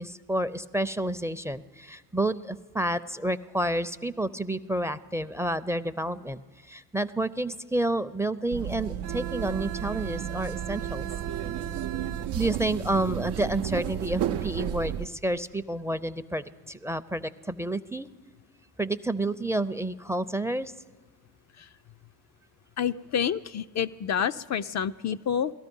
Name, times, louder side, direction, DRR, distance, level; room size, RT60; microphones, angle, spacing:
voice 1, 0.0-11.0 12.3-18.1 18.8-20.7, right 1 dB, 5° right, 16 dB, 0.5 m, -30 dB
sound 1, 8.5-15.1, right 10 dB, 80° right, 0.6 m, -32 dB
voice 2, 22.8-25.5, left 8 dB, 45° left, 10 dB, 0.4 m, -28 dB
18.5 x 13.0 x 5.4 m, 1.4 s
hypercardioid pair, 50°, 39 cm